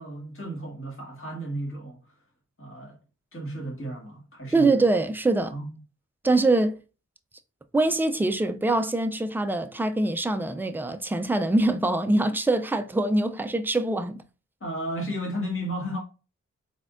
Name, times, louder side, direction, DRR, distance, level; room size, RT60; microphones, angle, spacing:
voice 1, 0.0-2.0 2.6-3.0 3.3-4.7 5.5-5.7 14.6-16.0, equal, 45° left, 1.9 m, -33 dB
voice 2, 4.5-5.5 6.2-6.8 7.7-14.2, right 2 dB, 5° right, 0.4 m, -24 dB
4.0 x 3.5 x 2.5 m
wide cardioid pair, 75°, 29 cm